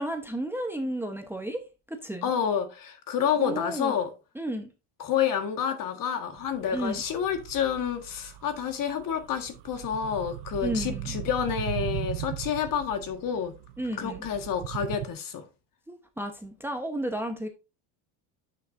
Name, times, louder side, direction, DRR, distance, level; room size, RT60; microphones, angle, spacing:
voice 1, 0.0-1.6 1.9-2.3 3.4-3.9 4.3-4.7 6.7-7.0 10.6-11.1 13.8-14.2 15.9-17.5, right 1 dB, 5° right, 1.0 m, -32 dB
voice 2, 2.2-4.1 5.0-13.5 14.0-15.4, left 8 dB, 50° left, 1.7 m, -29 dB
sound 1, 6.4-15.1, right 14 dB, 70° right, 0.8 m, -38 dB
9.8 x 6.1 x 2.6 m
supercardioid pair, 105°, 43 cm